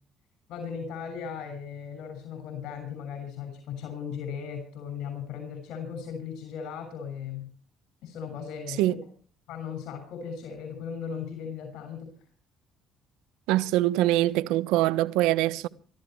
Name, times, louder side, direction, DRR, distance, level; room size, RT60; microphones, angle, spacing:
voice 1, 0.5-7.5 8.0-8.9 9.5-12.1, left 7 dB, 75° left, 6.4 m, -37 dB
voice 2, 13.5-15.7, right 15 dB, 90° right, 1.2 m, -23 dB
26.5 x 14.0 x 3.3 m
cardioid pair, 85°, 0 cm